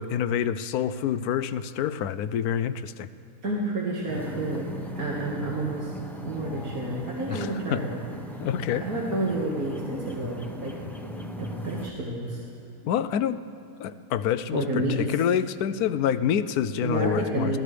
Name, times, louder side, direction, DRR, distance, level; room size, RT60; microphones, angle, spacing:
voice 1, 0.0-3.1 7.3-7.8 8.4-8.8 12.8-13.4 13.8-17.6, left 9 dB, 85° left, 14 dB, 1.1 m, -27 dB
voice 2, 3.4-4.7 4.9-5.9 6.3-8.0 8.7-10.8 11.4-12.4 14.5-15.0 16.8-17.6, right 1 dB, 75° right, -5 dB, 2.3 m, -30 dB
sound 1, 4.1-11.9, equal, ahead, 0.7 m, -39 dB
26.0 x 17.0 x 3.4 m, 2.9 s
omnidirectional pair, 1.6 m